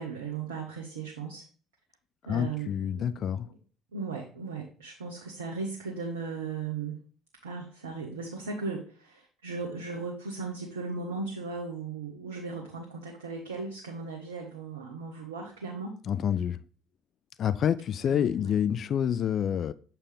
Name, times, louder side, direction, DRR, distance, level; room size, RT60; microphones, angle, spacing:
voice 1, 0.0-1.4 2.3-3.5 3.9-7.0 7.4-16.0 18.0-18.5, right 4 dB, 85° right, 0.9 m, -37 dB
voice 2, 2.3-3.5 16.1-16.6 17.4-19.7, left 9 dB, 50° left, 0.4 m, -28 dB
6.9 x 4.6 x 3.4 m
hypercardioid pair, 55°, 0 cm